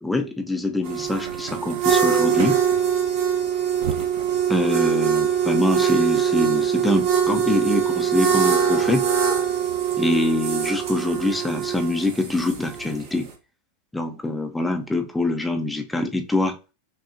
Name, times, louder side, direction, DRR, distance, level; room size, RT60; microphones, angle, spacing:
voice 1, 0.0-2.6 4.5-9.1 10.0-13.3 13.9-16.6, left 2 dB, 5° left, 0.6 m, -24 dB
sound 1, 0.8-13.3, right 8 dB, 45° right, 0.9 m, -23 dB
5.7 x 2.3 x 2.6 m
figure-of-eight pair, 90°, 0 cm